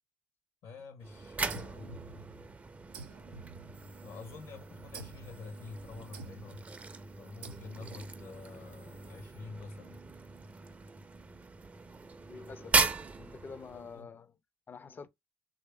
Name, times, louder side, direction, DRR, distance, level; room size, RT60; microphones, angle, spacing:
voice 1, 0.6-2.0 4.0-6.7 7.2-10.0 13.7-14.1, left 4 dB, 75° left, 0.9 m, -48 dB
sound 1, 1.0-14.0, right 3 dB, 25° right, 0.4 m, -38 dB
sound 2, 1.5-2.5 2.9-4.2 4.9-5.4 6.1-6.7 7.4-8.1, right 4 dB, 90° right, 0.5 m, -49 dB
voice 2, 12.3-12.9 13.2-14.3 14.7-15.1, left 5 dB, 35° left, 0.4 m, -47 dB
3.0 x 2.7 x 3.2 m
hypercardioid pair, 60°, 6 cm